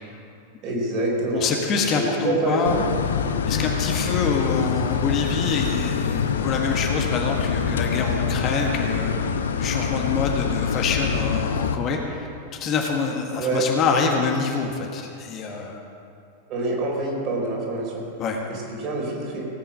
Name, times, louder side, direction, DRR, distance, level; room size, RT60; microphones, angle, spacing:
voice 1, 0.6-1.5 2.0-2.8 13.4-13.6 16.5-18.1 18.5-19.5, right 2 dB, 40° right, -2 dB, 4.2 m, -26 dB
voice 2, 1.3-2.8 3.5-12.3 12.6-15.8 18.2-18.4, left 5 dB, 35° left, 1 dB, 1.6 m, -26 dB
sound 1, 2.6-11.8, left 6 dB, 65° left, 0.8 m, -25 dB
17.5 x 8.9 x 6.4 m, 2.5 s
figure-of-eight pair, 90°, 0 cm